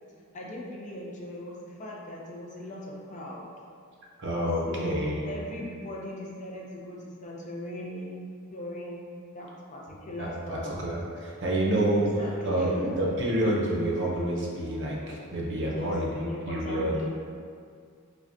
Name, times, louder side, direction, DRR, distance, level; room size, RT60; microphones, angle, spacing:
voice 1, 0.3-3.5 4.7-9.1 9.3-10.9 11.9-12.9 15.7-17.2, left 1 dB, 35° left, -3 dB, 0.5 m, -39 dB
voice 2, 4.2-5.3 10.2-17.0, right 1 dB, 55° right, -3 dB, 0.6 m, -28 dB
5.0 x 2.2 x 2.6 m, 2.2 s
head